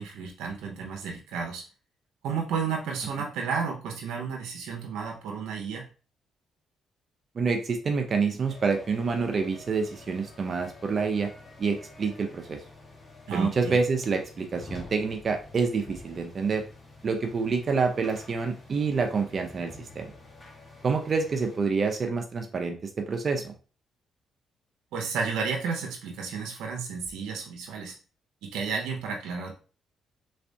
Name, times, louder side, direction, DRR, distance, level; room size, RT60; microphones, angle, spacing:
voice 1, 0.0-1.7 2.2-5.9 13.3-13.8 24.9-28.0 28.4-29.5, right 5 dB, 85° right, 0 dB, 0.6 m, -32 dB
voice 2, 7.4-11.3 11.6-12.6 13.3-16.6 17.0-20.1 20.8-23.5, right 4 dB, 45° right, 4 dB, 0.6 m, -27 dB
sound 1, 8.4-21.6, left 2 dB, 25° left, 1.1 m, -49 dB
3.4 x 3.2 x 2.7 m, 0.37 s
cardioid pair, 90°, 0 cm